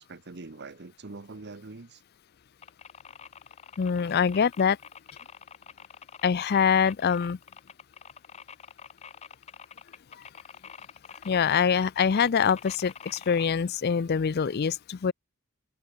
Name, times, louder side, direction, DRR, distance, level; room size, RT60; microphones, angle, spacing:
voice 1, 0.0-2.0, right 3 dB, 50° right, 0.9 m, -43 dB
sound 1, 2.6-13.5, left 6 dB, 30° left, 1.0 m, -47 dB
voice 2, 3.8-4.8 6.2-7.4 11.2-15.1, left 6 dB, 45° left, 0.4 m, -24 dB
head